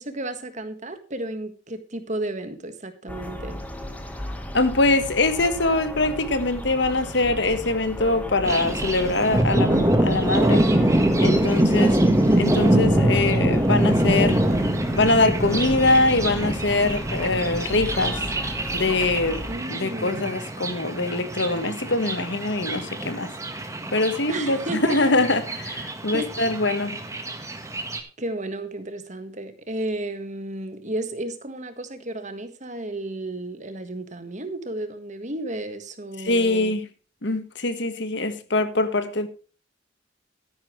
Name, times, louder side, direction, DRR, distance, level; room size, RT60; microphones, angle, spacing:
voice 1, 0.0-3.6 11.8-12.1 19.4-20.3 24.3-25.0 26.1-26.3 28.2-36.8, right 1 dB, 40° right, 1.6 m, -33 dB
sound 1, 3.1-19.5, equal, 10° left, 1.5 m, -35 dB
voice 2, 4.5-11.9 12.4-14.4 14.9-18.2 18.7-19.4 19.7-23.3 23.9-24.6 24.8-27.0 36.2-36.8 37.2-39.3, left 2 dB, 60° left, 1.5 m, -23 dB
Thunder, 8.4-28.0, right 1 dB, 15° right, 1.5 m, -24 dB
13.0 x 10.5 x 3.3 m
head